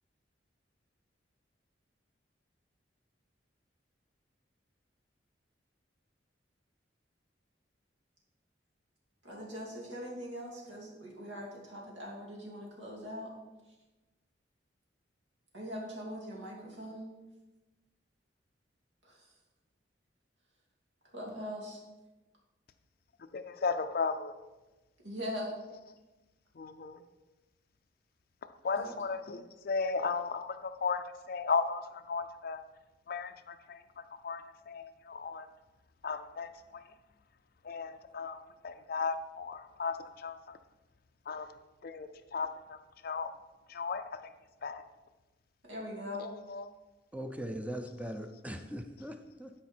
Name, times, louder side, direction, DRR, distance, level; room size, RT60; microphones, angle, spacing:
voice 1, 9.2-13.3 15.5-17.1 19.0-19.2 21.1-21.8 25.0-25.5 28.8-28.9 45.7-46.3, equal, 75° right, -2 dB, 2.6 m, -41 dB
voice 2, 23.3-24.4 26.6-27.0 28.6-32.6 33.1-35.5 36.0-36.9 37.6-40.6 41.3-42.8 43.0-43.3 43.7-44.2 44.6-44.8 46.2-46.7, left 4 dB, 50° left, 8 dB, 0.4 m, -36 dB
voice 3, 47.1-49.5, equal, 10° right, 6 dB, 0.6 m, -40 dB
12.5 x 5.0 x 4.4 m, 1.1 s
head